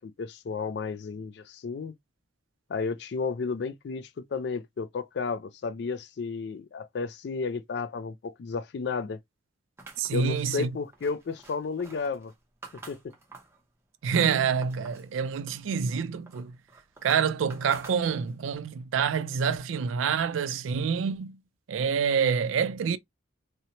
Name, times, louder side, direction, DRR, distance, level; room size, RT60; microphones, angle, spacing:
voice 1, 0.0-1.9 2.7-9.2 10.1-12.3 12.9-13.0, left 4 dB, 60° left, 0.3 m, -32 dB
sound 1, 9.8-13.6 14.0-15.1 15.5-18.5, right 3 dB, 15° right, 0.5 m, -49 dB
voice 2, 10.0-10.7 14.0-16.5 17.0-21.4 21.7-23.0, right 6 dB, 85° right, 0.4 m, -27 dB
2.7 x 2.0 x 2.8 m
head